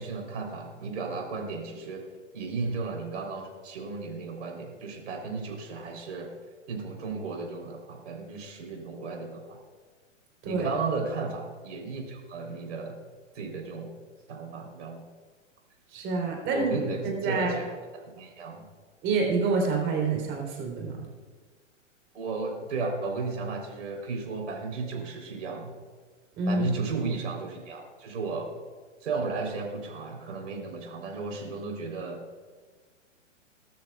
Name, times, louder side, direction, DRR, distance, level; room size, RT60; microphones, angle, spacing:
voice 1, 0.0-2.0 2.3-6.3 6.7-9.6 10.4-13.0 13.3-13.9 14.3-15.0 16.5-18.6 22.1-25.7 26.5-28.5 29.0-32.2, right 4 dB, 70° right, 2 dB, 3.8 m, -34 dB
voice 2, 15.9-16.7 17.0-17.6 19.0-21.0 26.4-26.7, right 4 dB, 30° right, 0 dB, 3.6 m, -27 dB
20.5 x 13.0 x 2.4 m, 1.5 s
hypercardioid pair, 120°, 37 cm